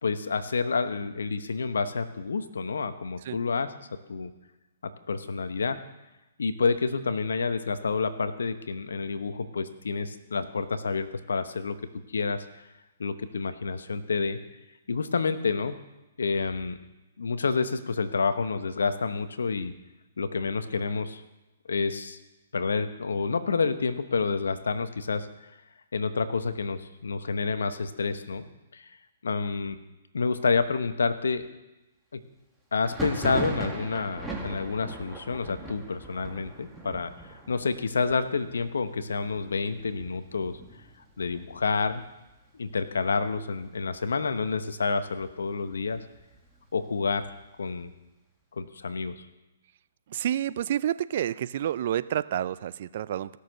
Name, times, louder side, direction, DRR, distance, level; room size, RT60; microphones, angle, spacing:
voice 1, 0.0-4.3 4.8-5.8 6.4-11.8 12.1-12.6 13.0-14.4 14.9-15.7 16.2-16.8 17.2-19.7 20.2-21.2 21.7-22.2 22.5-25.3 25.9-28.4 28.7-28.9 29.2-29.8 30.1-31.4 32.1-32.2 32.7-37.1 37.5-40.6 41.2-42.1 42.6-46.0 46.7-47.3 47.6-47.9 48.5-49.3, left 4 dB, 80° left, 11 dB, 1.0 m, -29 dB
Thunder, 32.8-42.3 42.6-43.3 43.5-44.5 44.9-46.6, right 2 dB, 5° right, 1.9 m, -40 dB
voice 2, 50.1-53.3, right 11 dB, 55° right, 16 dB, 0.4 m, -29 dB
16.5 x 6.6 x 6.5 m, 1.0 s
hypercardioid pair, 135°, 0 cm